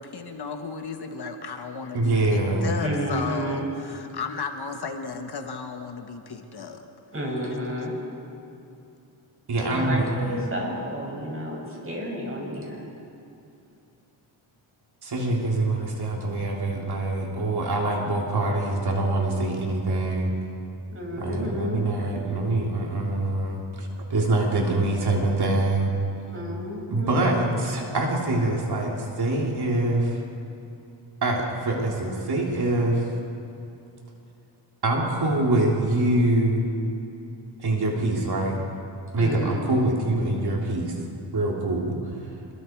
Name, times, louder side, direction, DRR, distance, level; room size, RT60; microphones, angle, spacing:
voice 1, 0.0-6.8, left 5 dB, 55° left, 5 dB, 1.5 m, -34 dB
voice 2, 1.9-2.7 9.5-10.1 15.0-20.3 21.2-25.9 26.9-30.2 31.2-33.1 34.8-36.6 37.6-38.6 39.1-40.9 41.3-42.2, right 2 dB, 55° right, -1 dB, 3.5 m, -24 dB
voice 3, 2.8-3.7 7.1-8.0 9.7-12.9 20.9-21.9 26.3-27.5 39.2-39.6, equal, 25° right, -2 dB, 6.5 m, -31 dB
26.5 x 22.0 x 4.7 m, 2.7 s
cardioid pair, 110°, 47 cm